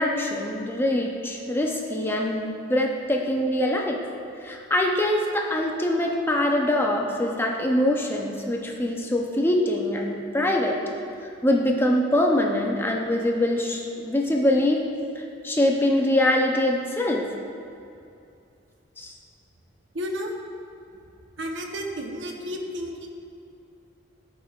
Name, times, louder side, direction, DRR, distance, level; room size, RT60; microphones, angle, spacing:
voice 1, 0.0-4.0 4.4-10.8 11.4-14.9 15.4-17.3 19.0-19.1, left 1 dB, 10° left, 0 dB, 0.5 m, -23 dB
voice 2, 19.9-20.3 21.4-23.1, equal, 65° right, 2 dB, 0.8 m, -32 dB
13.5 x 5.1 x 2.3 m, 2.6 s
head